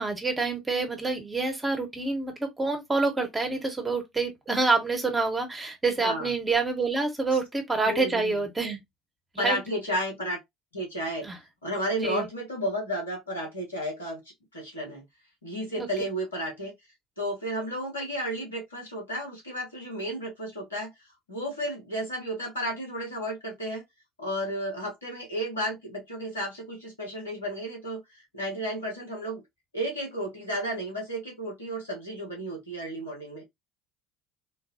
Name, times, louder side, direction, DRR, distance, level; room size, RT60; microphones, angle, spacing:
voice 1, 0.0-8.8 9.3-9.6 11.2-11.4 12.0-12.3 15.8-15.9, right 3 dB, 20° right, 1.3 m, -27 dB
voice 2, 6.0-6.3 7.8-8.3 9.4-10.4 10.7-11.3 11.6-14.2 14.5-15.0 15.4-16.7 17.2-20.9 21.3-23.8 24.2-29.4 29.7-33.4, equal, 90° left, 1.3 m, -32 dB
3.7 x 2.6 x 2.8 m
figure-of-eight pair, 60°, 0 cm